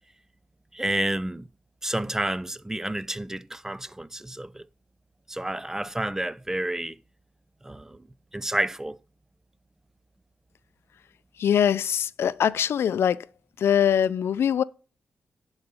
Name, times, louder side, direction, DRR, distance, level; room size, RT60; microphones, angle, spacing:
voice 1, 0.7-1.5 1.8-4.7 5.3-7.0 7.6-8.1 8.3-9.0, right 1 dB, 10° right, 0.5 m, -30 dB
voice 2, 11.4-13.3 13.6-14.6, left 9 dB, 75° left, 0.4 m, -22 dB
10.0 x 4.1 x 5.4 m
cardioid pair, 65°, 4 cm